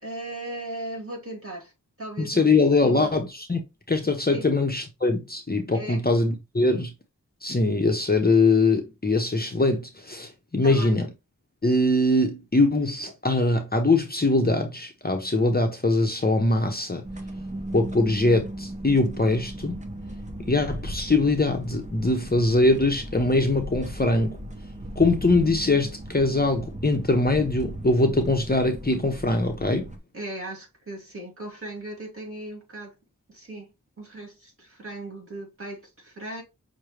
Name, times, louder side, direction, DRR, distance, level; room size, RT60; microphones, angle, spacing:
voice 1, 0.0-1.7 2.0-3.1 4.3-4.5 5.7-6.0 10.6-11.0 30.1-33.0 33.3-36.4, right 1 dB, 40° right, 2.3 m, -37 dB
voice 2, 2.2-3.6 3.9-6.9 7.4-11.1 11.6-17.0 17.7-19.8 20.4-24.4 25.0-29.9, left 2 dB, 30° left, 0.8 m, -22 dB
sound 1, 17.0-30.0, right 1 dB, 20° right, 0.8 m, -37 dB
6.1 x 2.2 x 3.2 m
wide cardioid pair, 60°, 32 cm